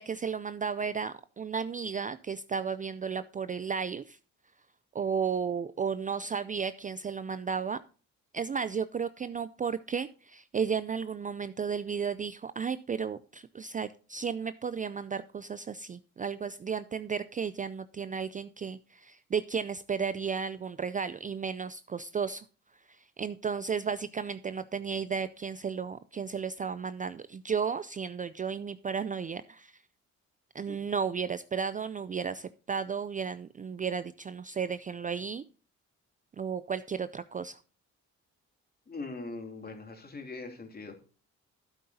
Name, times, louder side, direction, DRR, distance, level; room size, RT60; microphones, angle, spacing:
voice 1, 0.0-4.2 4.9-7.8 8.3-22.5 22.9-29.7 30.5-35.4 36.4-37.6, right 6 dB, 25° right, 14 dB, 0.4 m, -34 dB
voice 2, 38.9-41.0, left 3 dB, 30° left, 3 dB, 2.9 m, -41 dB
11.5 x 9.3 x 2.8 m, 0.37 s
cardioid pair, 90°, 30 cm